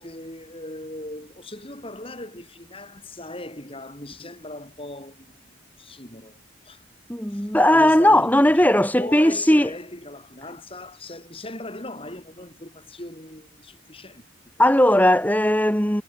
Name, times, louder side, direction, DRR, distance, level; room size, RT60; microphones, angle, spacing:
voice 1, 0.0-6.4 6.6-6.8 7.3-14.2, left 1 dB, 25° left, 6.2 m, -39 dB
voice 2, 7.1-9.7 14.6-16.0, left 1 dB, 10° left, 3.6 m, -17 dB
head